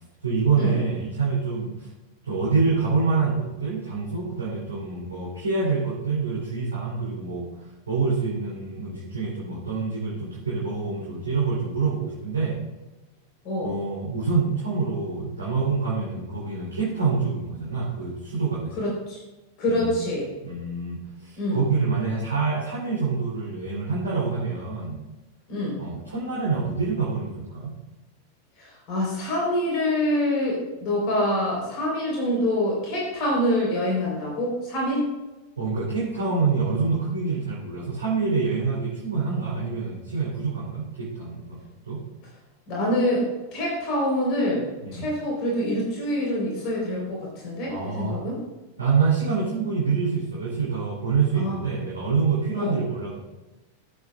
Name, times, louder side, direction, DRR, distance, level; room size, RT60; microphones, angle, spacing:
voice 1, 0.2-1.9 2.2-7.5 7.9-12.6 13.6-18.8 19.7-20.0 20.4-25.0 25.8-27.7 35.6-42.0 44.8-45.1 47.7-48.2 48.8-53.2, right 4 dB, 75° right, -7 dB, 2.9 m, -26 dB
voice 2, 18.8-19.2 19.6-20.3 21.4-21.6 25.5-25.8 28.6-35.1 42.7-43.3 43.5-48.4 51.3-51.6 52.6-52.8, left 1 dB, 40° left, -3 dB, 3.8 m, -26 dB
16.0 x 8.0 x 2.4 m, 1.1 s
figure-of-eight pair, 90°, 0 cm